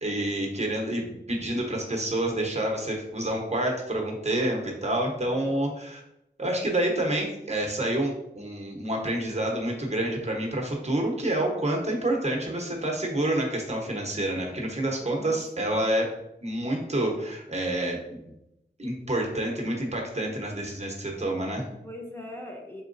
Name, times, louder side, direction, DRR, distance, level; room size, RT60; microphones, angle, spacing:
voice 1, 0.0-6.0 6.4-16.1 16.4-18.2 18.8-21.7, right 1 dB, 35° right, 0 dB, 1.0 m, -28 dB
voice 2, 15.0-15.8 20.2-20.5 21.8-22.8, left 1 dB, 15° left, -2 dB, 0.6 m, -42 dB
4.3 x 3.8 x 2.6 m, 0.85 s
wide cardioid pair, 60°, 19 cm